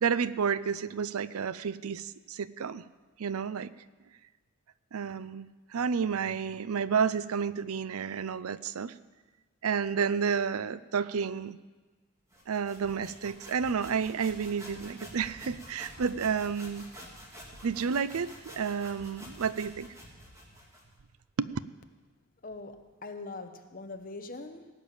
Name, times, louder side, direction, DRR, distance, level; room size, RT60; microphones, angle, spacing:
voice 1, 0.0-2.8 3.2-3.7 4.9-8.9 9.6-11.6 12.5-16.8 17.6-19.9 21.4-21.5, right 6 dB, 85° right, 16 dB, 0.5 m, -31 dB
sound 1, 12.3-20.9, equal, 15° right, 2.6 m, -49 dB
voice 2, 22.4-24.7, left 3 dB, 40° left, 7 dB, 1.0 m, -42 dB
18.0 x 6.7 x 8.9 m, 1.3 s
head